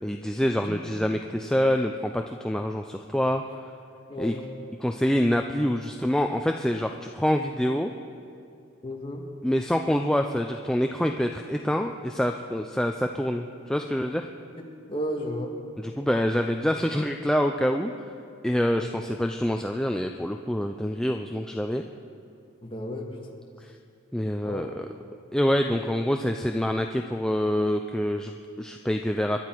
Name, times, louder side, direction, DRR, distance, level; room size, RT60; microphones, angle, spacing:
voice 1, 0.0-3.4 4.2-4.3 4.8-7.9 9.4-14.3 15.8-17.9 18.4-21.8 23.6-23.7 24.1-24.9 25.3-29.4, equal, 5° left, 4 dB, 0.4 m, -26 dB
voice 2, 4.1-4.4 8.8-9.2 14.9-15.5 18.8-18.9 22.6-23.1 24.5-24.7, equal, 25° left, 0 dB, 1.7 m, -32 dB
25.0 x 11.5 x 4.5 m, 2.6 s
head